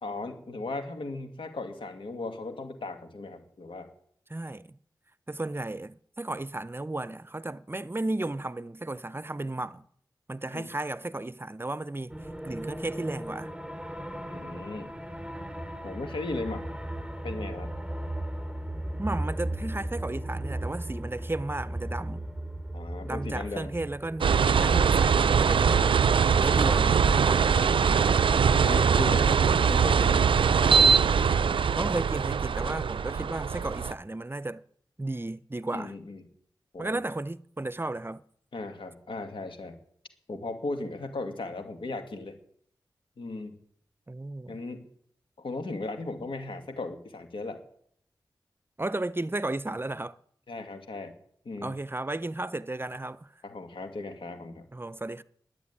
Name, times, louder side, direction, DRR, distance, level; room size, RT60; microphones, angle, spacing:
voice 1, 0.0-3.9 10.5-10.7 14.3-15.0 15.8-16.7 17.2-17.7 22.7-23.7 28.6-29.3 29.6-30.2 35.7-36.2 36.7-37.0 38.5-39.8 40.3-42.4 43.2-43.5 44.5-44.8 45.4-47.6 50.5-51.1 51.5-51.8 53.4-54.7, left 2 dB, 85° left, 2.2 m, -37 dB
voice 2, 4.3-4.8 5.3-9.8 10.3-13.5 19.0-22.3 23.0-26.0 26.4-27.7 31.8-34.6 35.0-35.9 36.8-38.2 44.1-44.6 48.8-50.2 51.6-53.3 54.7-55.2, right 2 dB, 25° right, 0.6 m, -34 dB
sound 1, 12.1-24.3, right 1 dB, 10° right, 2.6 m, -36 dB
sound 2, 24.2-33.9, right 6 dB, 80° right, 0.5 m, -22 dB
11.0 x 9.1 x 9.6 m
cardioid pair, 45°, 9 cm